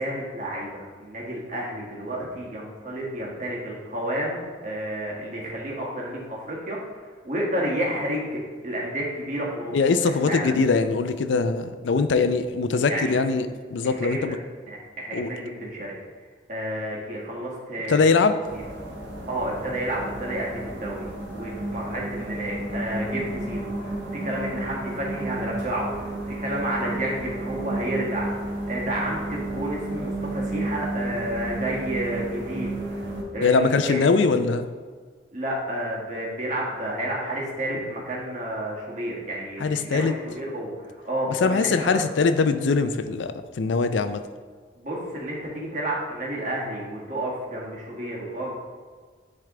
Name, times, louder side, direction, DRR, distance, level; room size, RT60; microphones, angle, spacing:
voice 1, 0.0-6.8 7.2-9.8 10.2-10.5 12.9-13.1 13.8-14.4 14.7-15.9 16.5-18.0 18.5-18.6 19.3-34.0 35.3-42.0 44.8-48.6, right 1 dB, 40° right, -4 dB, 1.5 m, -31 dB
voice 2, 9.7-14.4 15.1-15.3 17.9-18.4 33.4-34.7 39.6-40.1 41.4-44.2, left 4 dB, 80° left, 9 dB, 0.4 m, -22 dB
sound 1, 18.4-33.2, right 2 dB, 75° right, 1.2 m, -32 dB
10.0 x 3.4 x 3.7 m, 1.5 s
head